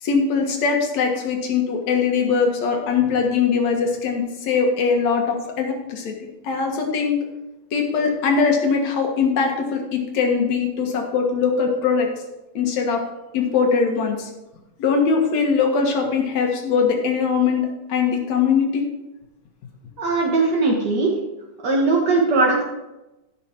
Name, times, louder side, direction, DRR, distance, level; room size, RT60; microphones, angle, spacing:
voice 1, 0.0-6.1 6.4-7.2 7.7-12.1 12.5-13.0 13.3-14.3 14.8-18.8, left 5 dB, 60° left, 2 dB, 2.7 m, -21 dB
voice 2, 20.0-21.1 21.6-22.6, right 3 dB, 55° right, -1 dB, 1.1 m, -19 dB
15.0 x 6.2 x 4.4 m, 0.99 s
omnidirectional pair, 3.7 m